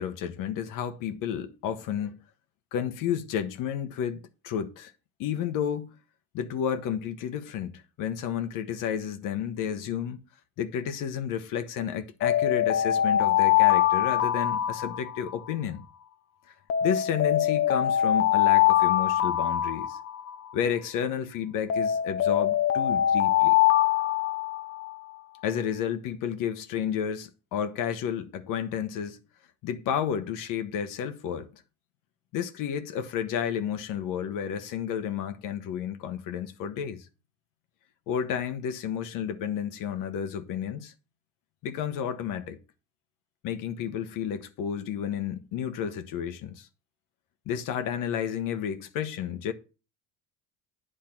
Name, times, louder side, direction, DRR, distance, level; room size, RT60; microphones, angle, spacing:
voice 1, 0.0-2.2 2.7-4.9 5.2-5.9 6.3-10.2 10.6-15.8 16.8-20.0 20.5-23.6 25.4-29.2 29.6-31.6 32.3-37.1 38.1-40.9 41.6-42.6 43.4-46.7 47.5-49.5, left 8 dB, 70° left, 1.0 m, -31 dB
Alarm, 12.2-15.5 16.7-20.5 21.7-25.0, left 11 dB, 40° left, 0.6 m, -23 dB
8.8 x 3.7 x 5.9 m
cardioid pair, 120°, 33 cm